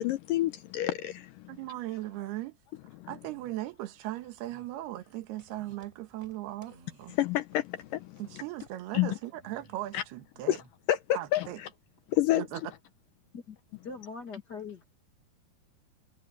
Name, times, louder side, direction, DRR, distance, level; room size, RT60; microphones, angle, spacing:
voice 1, 0.0-1.6 3.0-3.1 7.1-8.4 8.9-9.2 9.9-10.0 10.5-10.6 10.9-11.7 12.1-12.4, left 13 dB, 75° left, 2.1 m, -29 dB
voice 2, 1.5-2.6 3.1-7.2 8.2-10.6 11.1-11.6 12.3-12.6, right 15 dB, 90° right, 3.3 m, -38 dB
sound 1, 3.2-3.6 4.4-4.8 5.5-5.8 6.6-7.3 8.0-8.7 9.3-10.0 10.3-10.7, right 2 dB, 40° right, 8.5 m, -59 dB
sound 2, 5.4-8.9 9.2-9.7 9.9-10.2, right 1 dB, 10° right, 5.5 m, -62 dB
voice 3, 13.8-14.8, left 5 dB, 35° left, 1.8 m, -41 dB
omnidirectional pair, 4.5 m